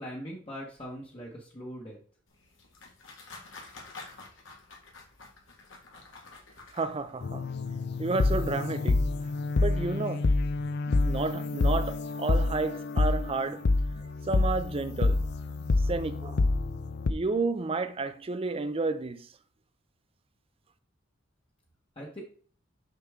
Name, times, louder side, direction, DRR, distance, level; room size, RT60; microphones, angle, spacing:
voice 1, 0.0-2.0 22.0-22.2, equal, 30° left, 1.2 m, -41 dB
sound 1, 2.3-7.2, left 3 dB, 75° left, 1.8 m, -49 dB
voice 2, 6.7-7.4 8.0-9.1 9.6-10.3 11.0-13.7 14.3-15.2 15.9-16.4 17.1-19.3, right 3 dB, 30° right, 0.5 m, -31 dB
sound 2, 7.2-17.1, left 3 dB, 60° left, 0.5 m, -27 dB
6.6 x 6.0 x 3.6 m
head